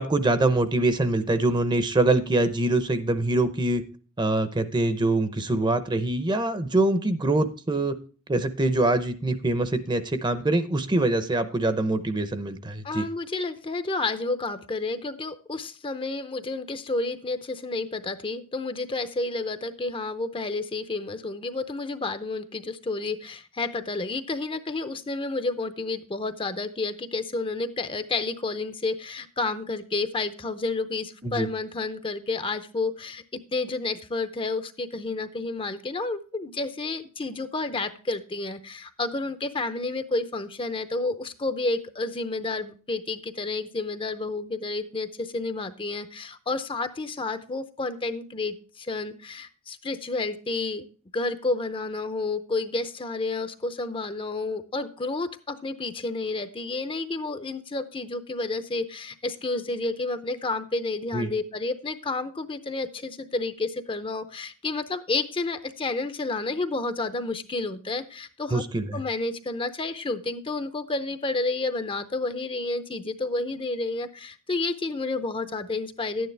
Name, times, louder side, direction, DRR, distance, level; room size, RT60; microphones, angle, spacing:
voice 1, 0.0-3.8 4.2-8.0 8.3-13.0 31.2-31.5 61.1-61.3 68.5-69.0, right 2 dB, 20° right, 11 dB, 0.7 m, -24 dB
voice 2, 12.8-33.2 33.5-50.9 51.1-68.6 68.9-76.3, left 3 dB, 25° left, 10 dB, 0.6 m, -30 dB
11.5 x 9.4 x 3.3 m, 0.38 s
head